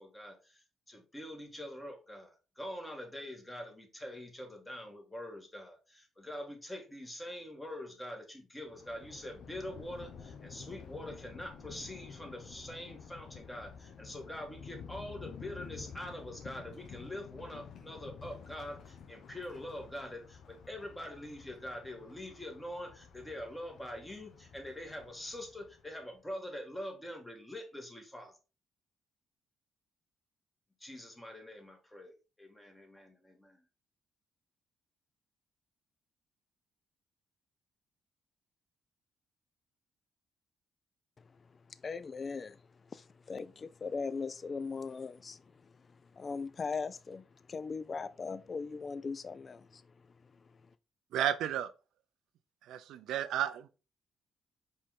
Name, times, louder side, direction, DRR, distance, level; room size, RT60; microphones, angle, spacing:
voice 1, 0.0-28.4 30.8-33.6, left 1 dB, 10° left, 1.4 m, -44 dB
Thunder, 8.6-26.0, left 6 dB, 65° left, 0.7 m, -51 dB
voice 2, 41.7-42.6 42.9-49.8 50.3-50.4, left 4 dB, 40° left, 0.3 m, -39 dB
voice 3, 51.1-51.7 52.7-53.7, right 11 dB, 85° right, 0.3 m, -32 dB
4.3 x 3.1 x 3.6 m
cardioid pair, 90°, 0 cm